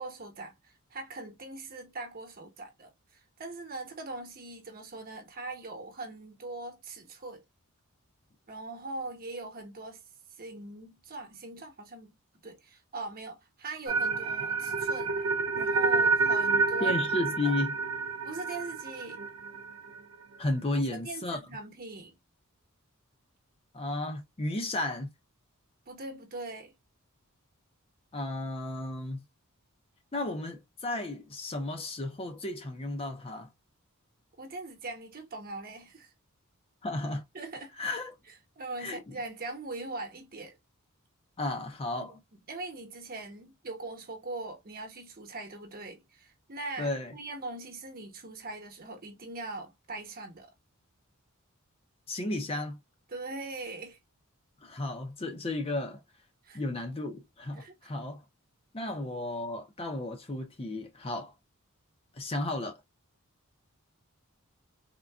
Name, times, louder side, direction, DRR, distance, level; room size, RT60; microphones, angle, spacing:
voice 1, 0.0-7.4 8.5-10.0 10.4-12.2 12.4-15.1 15.5-17.0 17.4-17.5 18.2-19.2 20.7-22.2 25.9-26.7 34.4-36.1 37.3-37.7 38.6-40.6 42.0-42.2 42.5-50.5 53.1-54.0 56.4-56.6 57.6-57.7, right 2 dB, 45° right, 1.0 m, -41 dB
sound 1, 13.9-20.0, right 4 dB, 70° right, 0.5 m, -28 dB
voice 2, 16.8-17.8 20.4-21.4 23.7-25.1 28.1-29.2 30.1-33.5 36.8-37.2 37.8-38.1 38.8-39.2 41.4-42.1 46.8-47.1 52.1-52.8 54.6-56.0 56.5-58.2 58.7-61.3 62.1-62.8, left 2 dB, 25° left, 0.5 m, -33 dB
3.7 x 2.2 x 2.2 m
head